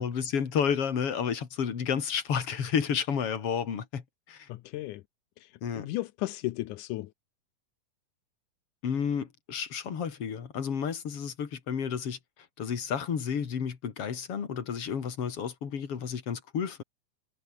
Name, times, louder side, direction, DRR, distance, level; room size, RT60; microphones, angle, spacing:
voice 1, 0.0-4.0 4.3-4.5 5.6-5.9 8.8-12.2 12.6-16.8, left 7 dB, 50° left, 3.3 m, -31 dB
voice 2, 4.5-5.0 5.4-7.1, left 17 dB, 85° left, 2.2 m, -35 dB
omnidirectional pair, 3.6 m